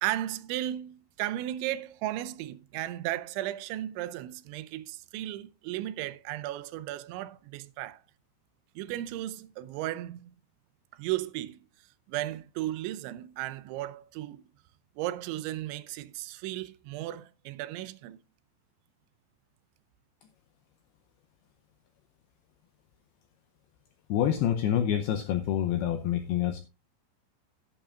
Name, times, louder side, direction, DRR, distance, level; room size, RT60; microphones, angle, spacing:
voice 1, 0.0-8.0 8.8-10.3 10.9-11.6 12.1-14.4 15.0-18.2, right 14 dB, 85° right, 3.0 m, -35 dB
voice 2, 24.1-26.6, left 10 dB, 90° left, 2.2 m, -27 dB
12.0 x 11.5 x 2.4 m
omnidirectional pair, 5.4 m